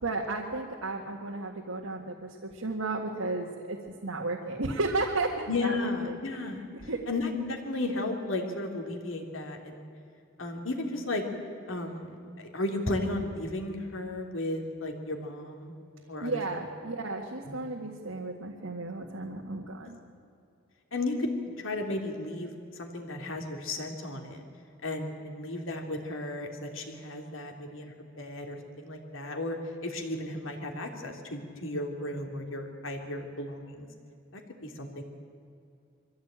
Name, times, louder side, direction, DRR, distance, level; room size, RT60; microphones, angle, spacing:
voice 1, 0.0-2.2 2.4-3.8 4.0-6.4 6.9-7.0 16.2-20.0, right 2 dB, 85° right, 0 dB, 1.8 m, -33 dB
voice 2, 5.5-6.6 7.1-9.9 10.4-11.2 11.7-15.7 16.1-16.4 17.4-17.6 19.8-19.9 20.9-21.3 21.6-24.4 24.8-33.9 34.3-35.0, left 2 dB, 70° left, 3 dB, 3.0 m, -34 dB
23.0 x 15.5 x 8.9 m, 2.6 s
head